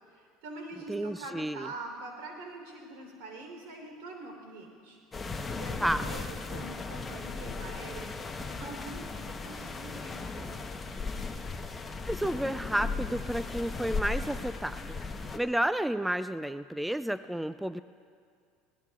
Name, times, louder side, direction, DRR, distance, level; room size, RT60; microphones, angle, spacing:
voice 1, 0.1-5.0 5.3-8.1 8.4-10.6, right 2 dB, 80° right, 2 dB, 3.6 m, -44 dB
voice 2, 0.9-1.7 5.8-6.1 12.0-17.8, right 1 dB, 5° right, 13 dB, 0.3 m, -31 dB
sound 1, 5.1-15.4, left 4 dB, 20° left, 1.0 m, -37 dB
23.0 x 18.5 x 2.4 m, 2.2 s
supercardioid pair, 105°, 0 cm